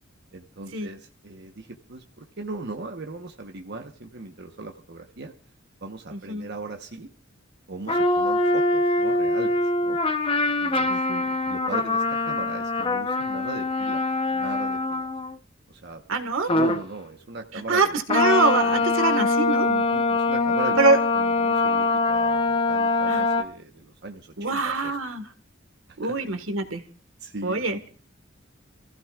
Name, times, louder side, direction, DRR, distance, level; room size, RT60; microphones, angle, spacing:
voice 1, 0.3-5.3 5.8-7.1 7.7-10.0 10.6-14.0 14.3-15.1 15.7-16.0 16.5-18.0 19.6-25.0 26.0-26.1 27.2-27.6, right 3 dB, 55° right, 3 dB, 1.1 m, -38 dB
voice 2, 6.1-6.5 10.9-11.2 16.1-16.5 17.7-19.7 20.8-21.0 23.1-23.2 24.4-25.2 26.0-26.8 27.4-27.9, right 3 dB, 85° right, 8 dB, 1.6 m, -24 dB
sound 1, 7.9-15.4 16.5-16.9 18.1-23.4, left 2 dB, 30° left, 0.8 m, -23 dB
30.0 x 15.0 x 2.4 m, 0.40 s
head